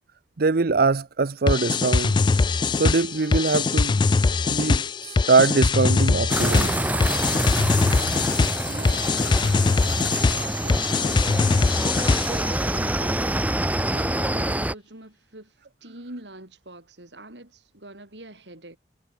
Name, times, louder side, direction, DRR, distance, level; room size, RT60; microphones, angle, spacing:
voice 1, 0.4-2.2 2.7-4.0 4.5-6.7, right 4 dB, 60° right, 0.7 m, -22 dB
sound 1, 1.5-12.5, left 4 dB, 25° left, 0.3 m, -22 dB
sound 2, 6.3-14.7, right 1 dB, 10° right, 1.6 m, -26 dB
voice 2, 8.7-9.6 10.3-11.6 12.2-13.5 13.9-15.5 15.8-18.8, right 1 dB, 80° right, 6.2 m, -43 dB
head